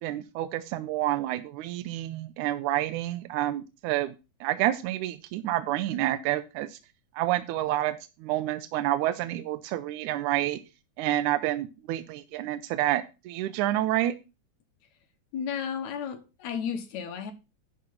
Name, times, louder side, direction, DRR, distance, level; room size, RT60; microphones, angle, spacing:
voice 1, 0.0-4.1 4.4-6.8 7.1-10.6 11.0-14.1, right 14 dB, 85° right, 2.1 m, -29 dB
voice 2, 15.3-17.3, left 7 dB, 75° left, 2.4 m, -33 dB
11.0 x 3.8 x 7.0 m
omnidirectional pair, 3.4 m